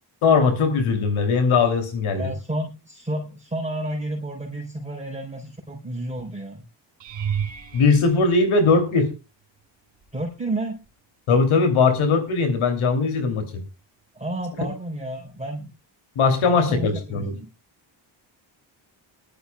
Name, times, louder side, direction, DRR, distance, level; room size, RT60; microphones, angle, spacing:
voice 1, 0.2-2.3 7.7-9.1 11.3-13.6 16.2-17.3, left 4 dB, 85° left, 7 dB, 3.0 m, -20 dB
voice 2, 2.1-6.7 10.1-10.8 14.1-15.8 16.4-17.5, right 1 dB, 15° right, -1 dB, 3.7 m, -31 dB
sound 1, 7.0-9.3 10.0-10.4 10.8-10.9 15.3-15.4, right 8 dB, 65° right, 3.0 m, -33 dB
20.5 x 12.0 x 2.3 m, 0.29 s
cardioid pair, 80°, 48 cm